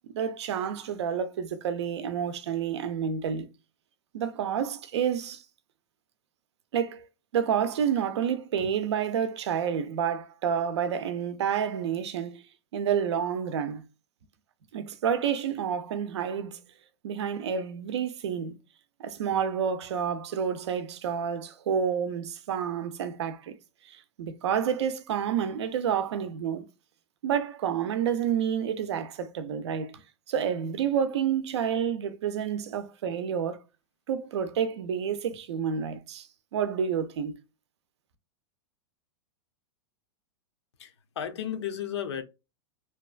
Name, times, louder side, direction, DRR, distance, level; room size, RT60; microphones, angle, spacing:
voice 1, 0.1-3.5 4.1-5.4 6.7-7.1 7.3-12.4 12.7-13.8 14.7-16.6 17.0-18.5 19.0-23.5 23.8-26.7 27.2-30.0 30.3-33.6 34.1-36.3 36.5-37.4, right 8 dB, 90° right, 0.5 m, -29 dB
voice 2, 40.8-42.2, left 9 dB, 85° left, 0.6 m, -34 dB
2.8 x 2.3 x 2.4 m
supercardioid pair, 150°, 14 cm